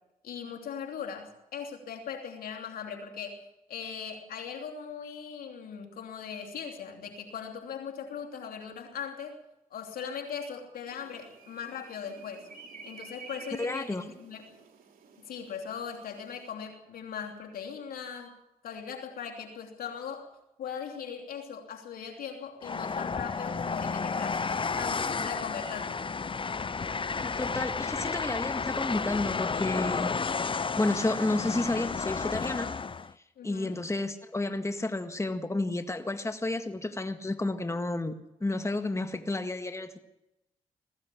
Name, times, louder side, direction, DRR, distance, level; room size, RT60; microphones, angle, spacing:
voice 1, 0.2-3.4 3.7-9.4 9.7-12.5 12.8-14.6 15.3-18.3 18.6-20.3 20.6-24.4 24.7-26.0 33.4-33.8, left 7 dB, 85° left, 3 dB, 3.0 m, -39 dB
sound 1, 10.9-16.5, right 4 dB, 80° right, 3.5 m, -50 dB
voice 2, 13.6-14.1 27.2-32.7 33.4-38.1 38.4-40.0, left 2 dB, 20° left, 7 dB, 1.8 m, -31 dB
Train, 22.6-33.1, left 5 dB, 35° left, 0.7 m, -32 dB
20.5 x 15.0 x 8.5 m, 0.92 s
cardioid pair, 60°, 15 cm